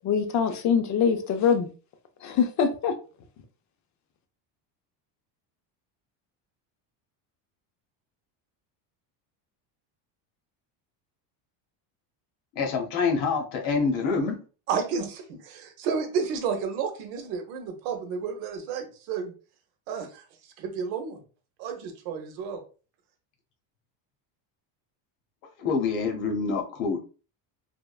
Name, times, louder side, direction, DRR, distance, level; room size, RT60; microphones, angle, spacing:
voice 1, 0.0-1.7 2.2-3.0, left 6 dB, 40° left, 7 dB, 0.5 m, -23 dB
voice 2, 12.5-14.4 25.6-27.0, left 4 dB, 75° left, 2 dB, 1.0 m, -26 dB
voice 3, 14.7-19.3 19.9-20.2 20.6-21.2 21.6-22.6, right 6 dB, 85° right, 6 dB, 0.8 m, -31 dB
3.4 x 2.1 x 2.2 m, 0.36 s
supercardioid pair, 120°, 48 cm